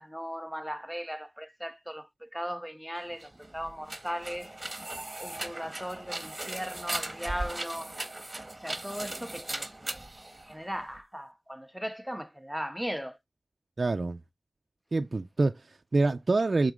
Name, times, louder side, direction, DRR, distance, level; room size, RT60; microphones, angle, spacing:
voice 1, 0.0-4.6 5.2-8.0 8.6-10.1 10.5-13.2, equal, ahead, 0.5 m, -38 dB
sound 1, 3.1-11.0, right 2 dB, 25° right, 1.4 m, -38 dB
voice 2, 13.8-14.2 14.9-16.7, right 3 dB, 55° right, 0.4 m, -26 dB
7.2 x 3.8 x 3.6 m
wide cardioid pair, 55°, 0 cm